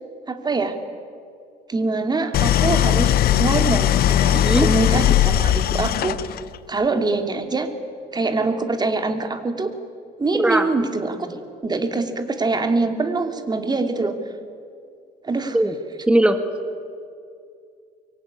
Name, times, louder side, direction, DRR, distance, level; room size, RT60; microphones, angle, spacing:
voice 1, 0.3-0.8 1.7-6.2 6.7-7.7 8.1-9.7 10.2-11.3 11.6-14.2 15.2-15.6, right 3 dB, 25° right, 7 dB, 2.7 m, -24 dB
Idling, 2.3-6.6, left 12 dB, 65° left, 0.7 m, -19 dB
voice 2, 4.3-4.7 10.3-10.7 15.5-15.7 16.1-16.4, right 1 dB, 5° right, 8 dB, 1.7 m, -19 dB
24.5 x 23.5 x 9.7 m, 2.4 s
cardioid pair, 110°, 17 cm